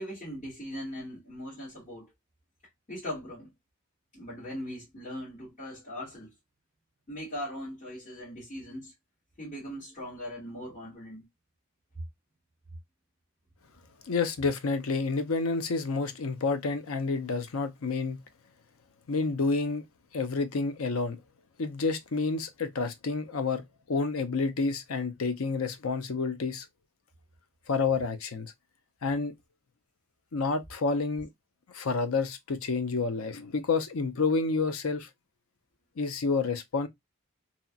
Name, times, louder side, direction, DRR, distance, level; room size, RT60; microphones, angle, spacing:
voice 1, 0.0-2.1 2.9-3.5 4.1-6.3 7.1-8.9 9.4-11.2, equal, 35° left, 1.7 m, -40 dB
voice 2, 14.1-18.2 19.1-19.8 20.1-21.2 21.6-23.6 23.9-26.7 27.7-28.5 29.0-29.3 30.3-31.3 31.7-35.1 36.0-36.9, left 4 dB, 80° left, 0.6 m, -29 dB
2.9 x 2.8 x 2.3 m
head